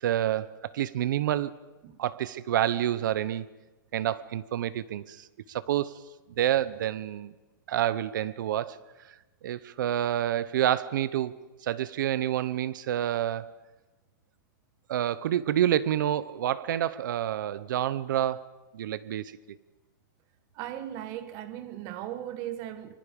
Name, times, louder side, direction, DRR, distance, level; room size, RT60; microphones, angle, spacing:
voice 1, 0.0-1.6 2.0-3.5 3.9-6.0 6.4-7.3 7.7-8.8 9.4-13.5 14.9-18.5 18.7-19.6, right 11 dB, 65° right, 0.8 m, -28 dB
voice 2, 20.5-22.9, right 12 dB, 30° right, 1.3 m, -37 dB
24.5 x 23.5 x 5.3 m
supercardioid pair, 160°, 11 cm